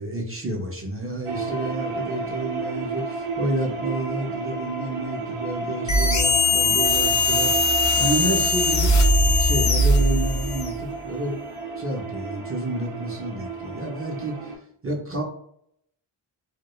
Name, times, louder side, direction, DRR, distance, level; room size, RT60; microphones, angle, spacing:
voice 1, 0.0-7.6 8.0-8.9 9.2-11.4 11.8-14.6 14.8-15.2, right 2 dB, 30° right, -1 dB, 0.5 m, -30 dB
sound 1, 1.2-14.5, right 3 dB, 90° right, 0.6 m, -32 dB
sound 2, 5.9-10.8, left 2 dB, 40° left, 0.4 m, -20 dB
2.2 x 2.1 x 2.9 m, 0.68 s
wide cardioid pair, 80°, 49 cm